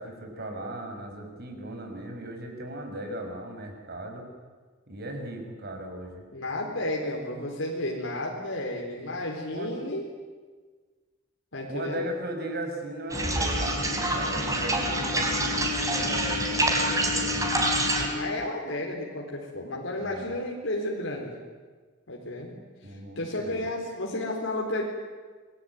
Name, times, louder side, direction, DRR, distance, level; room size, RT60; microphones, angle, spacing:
voice 1, 0.0-4.3 4.9-6.2 9.5-9.8 11.7-17.3 20.0-20.3 22.8-23.6, right 1 dB, 55° right, 3 dB, 6.0 m, -37 dB
voice 2, 6.3-10.0 11.5-12.1 18.1-21.4 22.1-22.5 22.9-24.8, left 1 dB, 90° left, -1 dB, 4.0 m, -32 dB
sound 1, 13.1-18.1, right 1 dB, 15° right, 4.4 m, -26 dB
27.0 x 20.5 x 9.4 m, 1.4 s
head